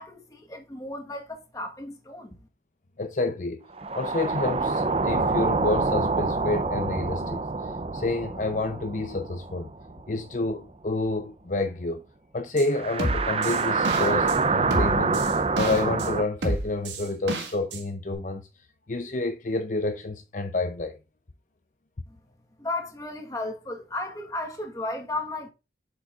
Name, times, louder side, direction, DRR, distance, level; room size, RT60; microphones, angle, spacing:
voice 1, 0.0-2.4 22.1-22.2 22.6-25.5, left 2 dB, 20° left, 1.4 m, -34 dB
voice 2, 3.0-3.6 3.9-9.7 10.1-12.0 12.3-15.2 15.6-18.5 18.9-21.0, left 2 dB, 45° left, 0.6 m, -29 dB
sound 1, 3.7-10.4 10.6-10.7 12.7-16.2, right 3 dB, 35° right, 0.6 m, -26 dB
sound 2, 12.6-12.7 13.0-14.4 14.7-16.1 16.4-17.8 18.1-18.2, right 1 dB, 85° right, 1.7 m, -29 dB
8.4 x 6.9 x 2.5 m
head